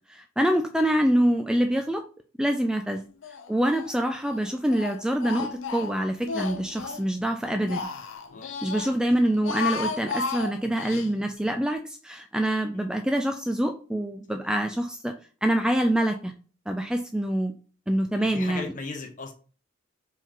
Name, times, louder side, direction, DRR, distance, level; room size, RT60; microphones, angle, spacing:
voice 1, 0.1-2.0 2.4-3.0 3.5-7.9 8.6-15.1 15.4-16.3 16.7-17.5 17.9-18.7, right 1 dB, 5° right, 5 dB, 0.3 m, -25 dB
Speech, 3.2-3.9 4.2-7.1 7.4-8.9 9.3-11.1, left 4 dB, 70° left, 0.6 m, -34 dB
voice 2, 18.1-19.3, left 3 dB, 40° left, 5 dB, 0.8 m, -38 dB
4.5 x 3.7 x 2.9 m, 0.38 s
head